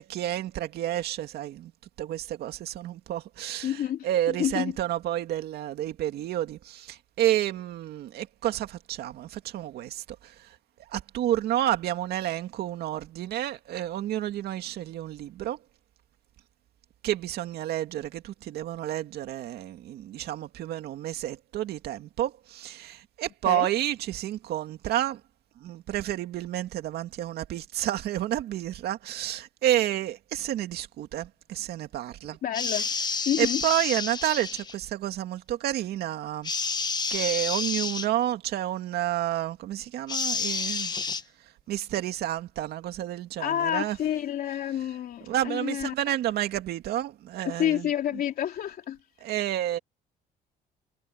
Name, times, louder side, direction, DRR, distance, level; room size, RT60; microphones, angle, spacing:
voice 1, 0.0-1.7 2.0-10.5 10.9-15.6 17.0-25.2 25.6-32.4 33.4-36.8 37.1-40.9 41.7-44.0 45.3-47.9 49.2-49.8, right 12 dB, 70° right, 2.3 m, -30 dB
voice 2, 3.6-4.8 23.4-23.7 32.4-32.9 33.2-33.6 43.4-46.2 47.4-49.0, left 11 dB, 60° left, 3.3 m, -29 dB
sound 1, 32.5-34.7 36.4-38.1 40.1-41.2, left 4 dB, 25° left, 1.3 m, -30 dB
cardioid pair, 110°, 17 cm